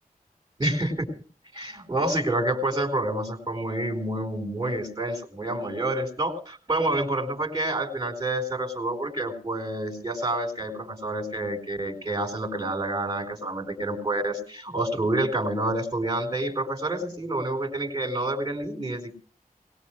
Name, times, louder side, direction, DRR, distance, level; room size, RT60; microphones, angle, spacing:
voice 1, 0.6-1.0 1.5-19.1, right 1 dB, 25° right, 2 dB, 4.4 m, -28 dB
20.0 x 17.5 x 3.2 m, 0.40 s
cardioid pair, 45°, 15 cm